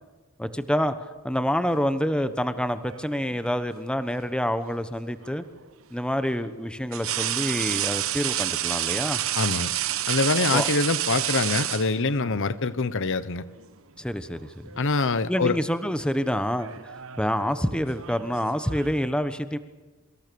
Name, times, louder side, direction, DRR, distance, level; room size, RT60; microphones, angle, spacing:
voice 1, 0.4-5.4 5.9-9.2 10.5-10.7 12.2-12.3 14.0-14.7 15.3-19.6, equal, 5° left, 1.1 m, -27 dB
sound 1, 2.6-3.5 5.2-5.4 6.9-12.4 13.6-13.8 14.2-14.9 15.2-15.6 16.4-19.0, right 12 dB, 70° right, 1.1 m, -30 dB
voice 2, 9.3-9.7 10.1-13.4 14.8-15.6, left 3 dB, 60° left, 1.0 m, -24 dB
27.0 x 24.5 x 7.0 m
head